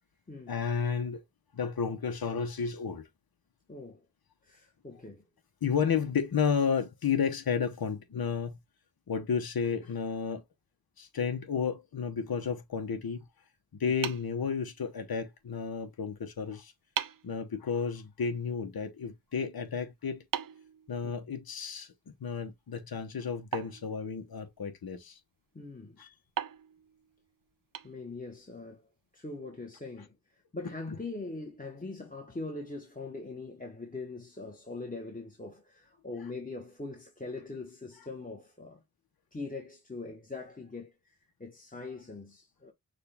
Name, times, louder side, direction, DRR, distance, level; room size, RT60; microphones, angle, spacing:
voice 1, 0.5-1.2 1.5-3.1 5.6-8.6 9.1-10.4 11.0-13.2 13.8-16.7 17.2-20.2 20.9-25.2 26.0-26.1, left 6 dB, 70° left, 1.0 m, -32 dB
voice 2, 3.7-4.1 4.4-5.2 21.0-21.1 25.5-26.0 27.8-28.8 29.1-38.8 39.3-42.7, left 3 dB, 20° left, 1.2 m, -42 dB
sound 1, 14.0-15.1 16.4-16.5 17.0-17.4 20.3-21.5 23.5-24.6 26.4-28.4, right 9 dB, 60° right, 0.5 m, -40 dB
6.6 x 2.4 x 3.4 m
wide cardioid pair, 80°, 38 cm